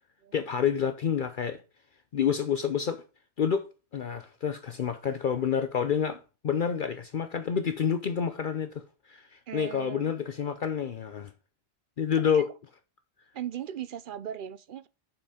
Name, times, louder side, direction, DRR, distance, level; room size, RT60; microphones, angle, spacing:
voice 1, 0.3-1.6 2.1-3.0 3.4-3.7 3.9-11.3 12.0-12.5, left 7 dB, 55° left, 0.8 m, -28 dB
voice 2, 9.5-10.1 12.3-12.4 13.3-14.9, right 10 dB, 60° right, 0.7 m, -38 dB
7.0 x 6.0 x 5.0 m
omnidirectional pair, 1.1 m